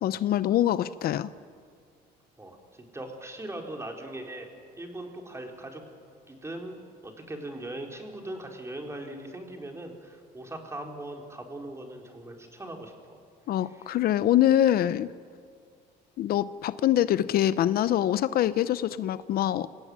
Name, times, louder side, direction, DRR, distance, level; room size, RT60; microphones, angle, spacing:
voice 1, 0.0-1.3 13.5-15.1 16.2-19.7, left 12 dB, 65° left, 15 dB, 0.7 m, -24 dB
voice 2, 2.4-4.5 4.8-5.8 6.3-12.9 13.7-13.9, right 1 dB, 15° right, 2 dB, 3.9 m, -40 dB
27.0 x 17.0 x 9.6 m, 2.2 s
cardioid pair, 110°, 17 cm